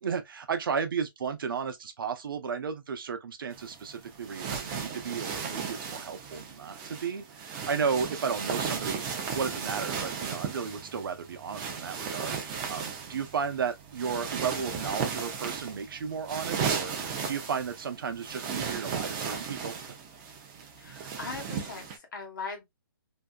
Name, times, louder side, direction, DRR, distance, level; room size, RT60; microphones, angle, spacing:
voice 1, 0.0-9.0 9.3-12.4 12.7-19.8, right 6 dB, 65° right, 0.6 m, -33 dB
sound 1, 3.5-22.0, right 6 dB, 20° right, 0.4 m, -36 dB
voice 2, 20.8-22.6, left 4 dB, 60° left, 1.2 m, -40 dB
2.7 x 2.3 x 2.2 m
hypercardioid pair, 160°, 12 cm